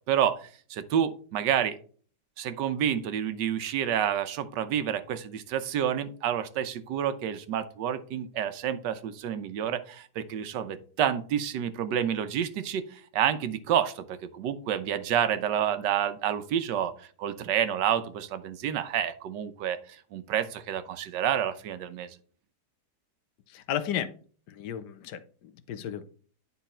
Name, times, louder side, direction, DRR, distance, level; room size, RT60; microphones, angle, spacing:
voice 1, 0.1-1.8 2.4-16.9 17.2-19.8 20.1-22.2, right 9 dB, 90° right, 11 dB, 1.4 m, -29 dB
voice 2, 23.5-24.1 24.5-26.0, left 9 dB, 80° left, 12 dB, 1.3 m, -34 dB
9.5 x 4.1 x 4.2 m, 0.43 s
omnidirectional pair, 1.8 m